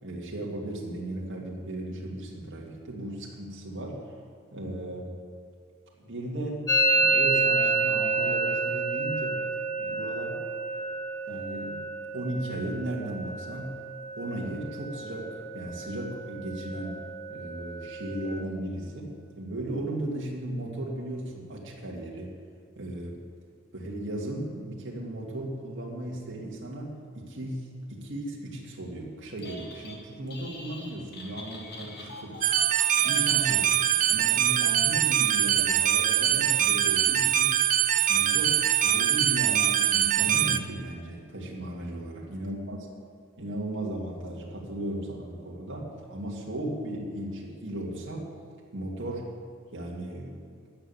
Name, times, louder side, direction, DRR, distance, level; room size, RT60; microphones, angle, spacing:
voice 1, 0.0-4.1 4.5-5.1 6.0-6.6 6.9-9.4 9.8-10.4 11.3-11.8 12.1-13.8 14.2-17.0 17.3-22.4 22.8-23.2 23.7-32.6 33.0-33.7 34.1-37.6 38.1-42.8 43.4-48.3 48.7-49.3 49.7-50.6, right 1 dB, 60° right, -3 dB, 2.2 m, -36 dB
Musical instrument, 6.7-14.3 14.6-15.2 15.4-16.0 16.3-18.3, right 2 dB, 20° left, 1.7 m, -29 dB
Telephone, 29.2-30.0 30.3-34.0, left 1 dB, 50° left, 2.3 m, -44 dB
sound 1, 32.4-40.6, right 11 dB, 40° right, 0.4 m, -23 dB
13.0 x 7.2 x 9.5 m, 2.4 s
head